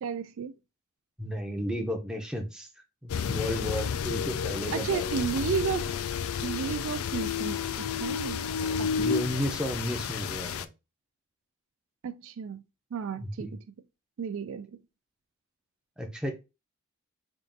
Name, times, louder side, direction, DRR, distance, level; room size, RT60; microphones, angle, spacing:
voice 1, 0.0-0.5 4.7-5.9 6.4-8.4 8.8-9.1 12.0-12.6 12.9-13.6 14.2-14.7, right 6 dB, 65° right, 0.3 m, -33 dB
voice 2, 1.2-2.7 3.0-5.1 8.6-10.7 13.2-13.5 16.0-16.3, equal, 5° right, 0.6 m, -33 dB
sound 1, 3.1-10.6, left 7 dB, 80° left, 0.4 m, -31 dB
3.6 x 2.5 x 3.9 m
head